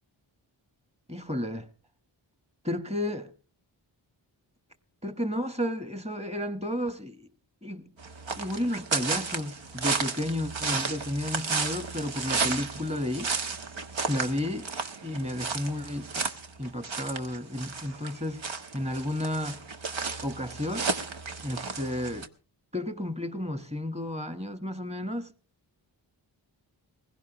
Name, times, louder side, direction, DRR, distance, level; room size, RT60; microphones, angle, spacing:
voice 1, 1.1-1.7 2.6-3.3 5.0-7.3 7.6-7.9 8.4-13.3 14.1-14.6 15.0-16.2 16.6-18.4 18.7-19.6 20.2-20.9 21.4-22.3 22.7-25.3, left 1 dB, 15° right, 1.4 m, -32 dB
sound 1, 8.0-22.3, right 4 dB, 70° right, 1.5 m, -33 dB
20.5 x 16.5 x 3.1 m
cardioid pair, 55°, 48 cm